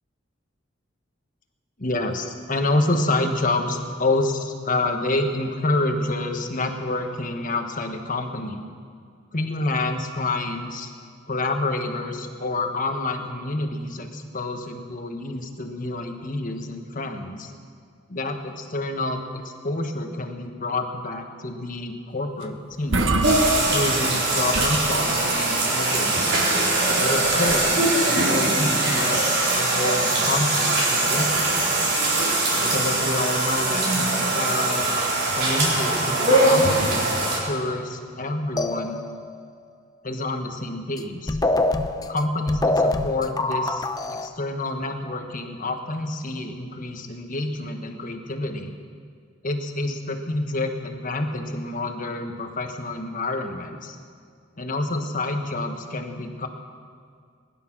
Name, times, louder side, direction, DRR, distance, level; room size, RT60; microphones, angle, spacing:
voice 1, 1.8-8.6 9.3-10.9 11.3-17.5 18.1-23.1 23.5-26.5 27.0-31.7 32.5-35.0 35.4-39.0 40.0-41.4 42.1-48.7 49.4-54.0 54.6-56.5, left 2 dB, 45° left, 5 dB, 1.4 m, -28 dB
sound 1, 22.4-22.5 22.7-24.2 24.5-25.5 27.2-27.7, right 2 dB, 75° right, 1.1 m, -27 dB
sound 2, 23.2-37.4, right 2 dB, 60° right, 4.4 m, -22 dB
sound 3, 38.6-39.4 41.0-41.1 41.3-44.3, left 2 dB, 20° left, 0.6 m, -24 dB
20.5 x 11.5 x 6.1 m, 2.2 s
head